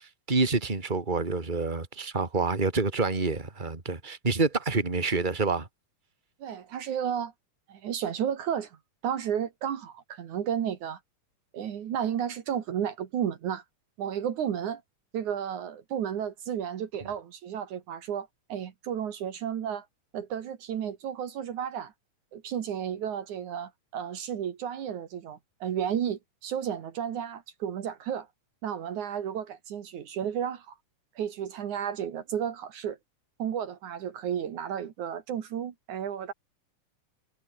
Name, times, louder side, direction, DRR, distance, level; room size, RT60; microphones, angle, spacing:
voice 1, 0.0-5.7, right 3 dB, 15° right, 3.0 m, -27 dB
voice 2, 6.4-7.3 7.7-8.8 9.0-11.0 11.5-13.6 14.0-14.8 15.1-19.9 20.1-21.9 22.3-28.3 28.6-30.7 31.2-33.0 33.4-36.3, right 9 dB, 70° right, 3.1 m, -32 dB
omnidirectional pair, 3.6 m